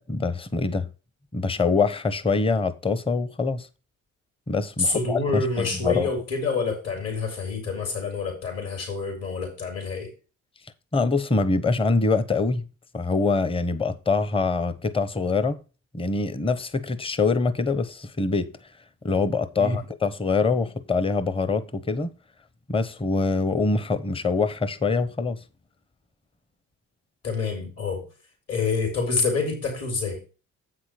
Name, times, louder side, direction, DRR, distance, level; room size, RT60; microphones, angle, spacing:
voice 1, 0.1-0.9 1.3-3.7 4.5-6.1 10.9-12.7 12.9-15.6 15.9-18.5 19.0-22.1 22.7-25.4, left 4 dB, 20° left, 0.8 m, -24 dB
voice 2, 4.8-10.1 19.6-19.8 27.2-28.1 28.5-30.2, left 4 dB, 55° left, 4.0 m, -27 dB
8.1 x 5.8 x 4.9 m
cardioid pair, 90°, 30 cm